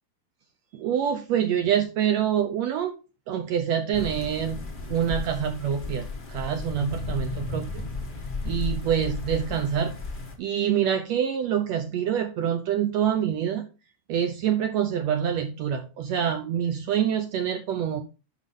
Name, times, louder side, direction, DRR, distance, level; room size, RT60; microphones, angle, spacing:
voice 1, 0.7-2.9 3.3-7.8 8.4-9.9 10.4-13.7 14.1-18.0, right 9 dB, 75° right, 7 dB, 1.7 m, -26 dB
sound 1, 3.9-10.4, left 3 dB, 70° left, 0.4 m, -34 dB
11.0 x 5.6 x 3.7 m, 0.32 s
omnidirectional pair, 3.6 m